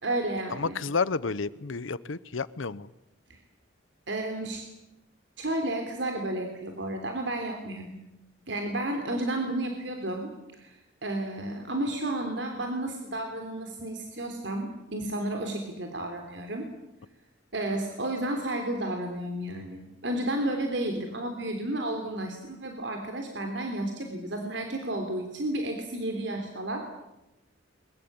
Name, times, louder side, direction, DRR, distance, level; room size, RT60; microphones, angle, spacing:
voice 1, 0.0-0.8 4.1-4.6 5.4-8.0 8.5-10.3 10.6-10.7 11.0-16.7 17.5-26.8, right 1 dB, 65° right, 3 dB, 3.3 m, -32 dB
voice 2, 0.6-2.9, left 4 dB, 90° left, 18 dB, 0.8 m, -30 dB
23.0 x 22.0 x 8.8 m, 0.93 s
head